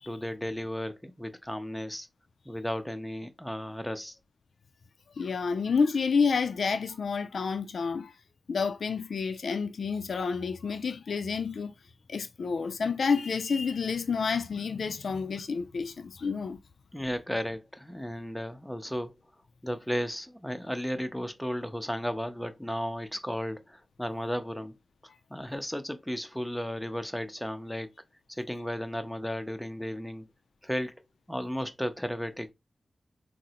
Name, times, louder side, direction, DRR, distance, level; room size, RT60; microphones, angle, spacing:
voice 1, 0.1-2.1 2.5-4.2 16.9-19.1 19.6-24.7 25.3-27.9 28.3-30.3 30.6-31.0 31.3-32.5, equal, 5° left, 0.5 m, -34 dB
voice 2, 5.2-8.2 8.5-11.7 12.1-16.6, left 5 dB, 75° left, 0.3 m, -29 dB
3.7 x 2.0 x 2.8 m
wide cardioid pair, 75°, 0 cm